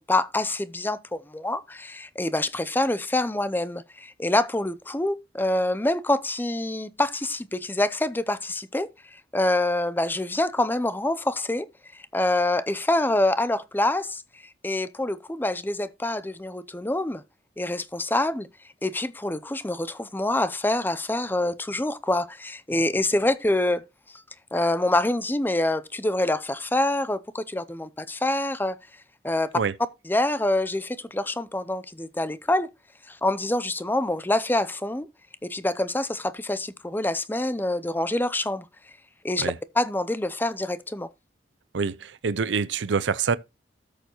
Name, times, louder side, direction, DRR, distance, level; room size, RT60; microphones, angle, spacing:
voice 1, 0.0-8.9 9.3-11.7 11.9-14.2 14.6-17.2 17.6-18.5 18.8-23.8 24.5-28.8 29.2-29.5 30.0-32.7 33.1-35.1 35.4-38.7 39.2-41.1, left 1 dB, 10° left, 0.5 m, -26 dB
voice 2, 41.7-43.4, right 5 dB, 85° right, 0.5 m, -26 dB
13.0 x 6.9 x 3.0 m
head